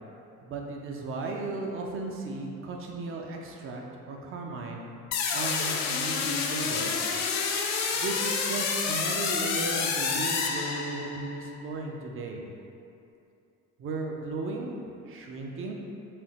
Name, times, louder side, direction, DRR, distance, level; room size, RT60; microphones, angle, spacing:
voice 1, 0.4-3.8 4.1-4.8 5.3-7.1 7.9-12.4 13.8-14.8 15.1-15.7, right 3 dB, 30° right, 0 dB, 0.5 m, -35 dB
sound 1, 5.1-11.3, left 5 dB, 40° left, 0.5 m, -29 dB
4.9 x 2.7 x 3.0 m, 2.6 s
figure-of-eight pair, 50°, 46 cm